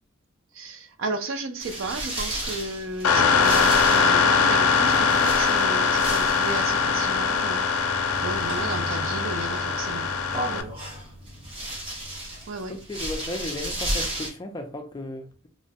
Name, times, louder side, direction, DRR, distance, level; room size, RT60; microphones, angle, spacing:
voice 1, 0.5-7.6 7.9-10.1 10.5-10.6 12.5-12.8, right 3 dB, 60° right, 0.4 m, -33 dB
sound 1, 1.6-14.3, right 1 dB, 25° right, 0.8 m, -34 dB
sound 2, 3.0-10.6, left 5 dB, 85° left, 0.4 m, -22 dB
voice 2, 12.7-15.5, left 1 dB, 20° left, 0.3 m, -35 dB
3.1 x 2.1 x 2.7 m
head